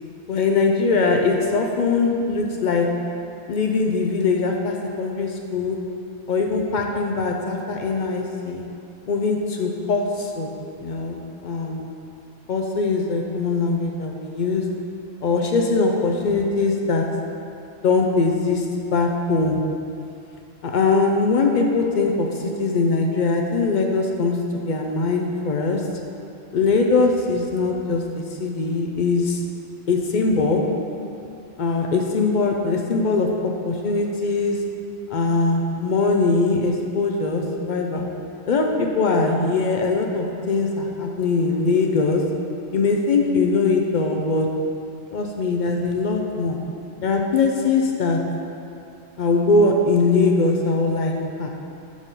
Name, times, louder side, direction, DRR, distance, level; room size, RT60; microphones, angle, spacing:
voice 1, 0.3-2.9 3.5-5.8 6.3-8.7 9.1-10.5 10.8-11.9 12.5-14.6 15.2-17.0 17.8-18.6 18.9-19.6 20.6-24.4 24.7-25.8 26.5-29.4 29.9-30.6 31.6-33.3 33.6-34.6 35.1-38.1 38.5-42.2 42.7-44.5 45.1-46.6 47.0-48.2 49.2-51.5, left 3 dB, 60° left, 1 dB, 0.5 m, -21 dB
5.5 x 4.8 x 5.2 m, 2.6 s
omnidirectional pair, 1.3 m